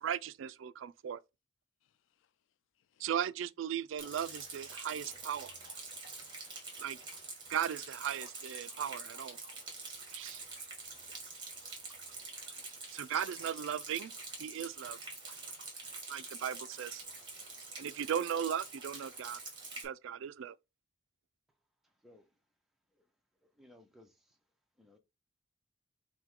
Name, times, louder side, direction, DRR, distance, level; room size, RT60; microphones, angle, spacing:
voice 1, 0.0-1.2 3.0-5.5 6.8-7.0 7.5-9.4 10.1-10.4 12.9-14.1 14.4-15.0 16.1-17.0 17.8-19.4 19.8-20.5, right 9 dB, 70° right, 0.3 m, -37 dB
Rain, 4.0-19.9, right 3 dB, 25° right, 1.7 m, -46 dB
voice 2, 9.1-9.8 10.4-10.8 11.1-12.0 12.9-13.2, left 11 dB, 70° left, 0.3 m, -59 dB
voice 3, 23.6-24.4 24.8-25.0, left 1 dB, ahead, 0.6 m, -60 dB
5.8 x 2.2 x 3.6 m
head